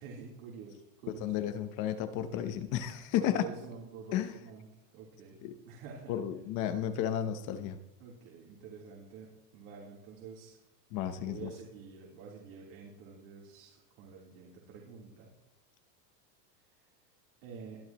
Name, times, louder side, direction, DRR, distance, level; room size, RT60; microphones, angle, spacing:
voice 1, 0.0-1.3 3.2-4.6 4.9-6.1 8.0-9.3 9.5-10.6 11.3-15.3 17.4-17.8, right 5 dB, 55° right, -4 dB, 3.8 m, -48 dB
voice 2, 1.1-3.4 4.1-4.3 5.4-5.5 6.1-7.8 10.9-11.5, left 10 dB, 40° left, 10 dB, 1.0 m, -33 dB
21.5 x 11.5 x 3.1 m, 0.92 s
supercardioid pair, 155°, 50 cm